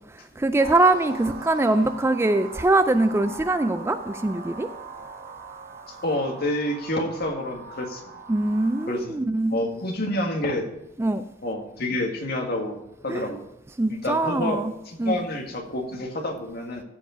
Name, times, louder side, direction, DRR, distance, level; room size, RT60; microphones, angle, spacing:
voice 1, 0.4-4.7 8.3-9.5 11.0-11.2 13.1-13.3 13.8-14.7 15.0-15.2, right 2 dB, 15° right, 0.4 m, -22 dB
sound 1, 0.6-9.0, right 3 dB, 50° right, 1.2 m, -40 dB
voice 2, 6.0-8.1 8.9-9.2 9.5-10.7 11.4-12.8 13.0-13.4 13.9-14.6 14.9-16.8, left 1 dB, 55° left, 1.7 m, -28 dB
14.0 x 4.8 x 5.0 m
head